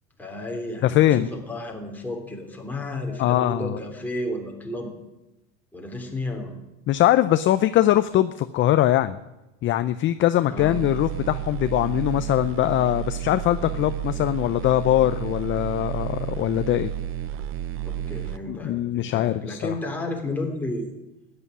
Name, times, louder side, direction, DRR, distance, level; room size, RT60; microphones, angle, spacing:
voice 1, 0.2-4.9 5.7-6.5 10.4-10.8 17.8-20.9, left 1 dB, 5° left, 0 dB, 3.3 m, -32 dB
voice 2, 0.8-1.3 3.2-3.8 6.9-9.2 9.6-16.9 18.5-19.7, left 13 dB, 30° left, 12 dB, 0.6 m, -22 dB
sound 1, 10.6-18.4, right 11 dB, 35° right, 0.7 m, -31 dB
13.5 x 9.8 x 9.9 m, 0.99 s
supercardioid pair, 125°, 39 cm